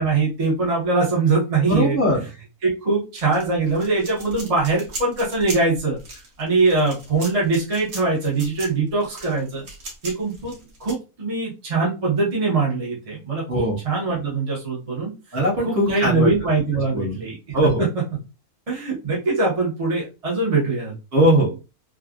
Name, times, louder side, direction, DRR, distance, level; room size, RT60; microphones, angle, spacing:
voice 1, 0.0-2.0 2.6-6.0 6.4-9.6 10.0-10.5 10.8-15.1 15.6-17.3 18.7-20.9, right 3 dB, 30° right, -5 dB, 1.0 m, -22 dB
voice 2, 1.7-2.2 13.5-13.8 15.3-16.3 16.9-17.2 17.5-17.8 21.1-21.5, equal, 45° right, -5 dB, 1.4 m, -19 dB
sound 1, 3.2-10.9, right 2 dB, 85° right, 1.5 m, -38 dB
3.6 x 2.4 x 2.3 m, 0.30 s
omnidirectional pair, 1.4 m